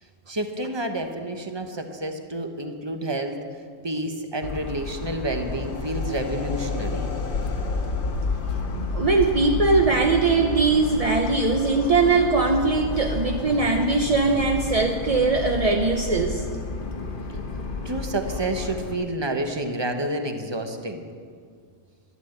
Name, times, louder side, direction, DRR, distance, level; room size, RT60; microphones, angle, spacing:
voice 1, 0.3-3.4 3.8-7.2 17.8-21.0, right 1 dB, 20° right, 6 dB, 0.9 m, -29 dB
Motor vehicle (road) / Siren, 4.4-18.9, left 3 dB, 40° left, 1.1 m, -32 dB
sound 1, 5.2-10.2, left 4 dB, 85° left, 1.7 m, -31 dB
voice 2, 8.9-16.4, right 3 dB, 35° right, 3 dB, 0.6 m, -21 dB
12.5 x 11.5 x 8.0 m, 2.1 s
omnidirectional pair, 1.5 m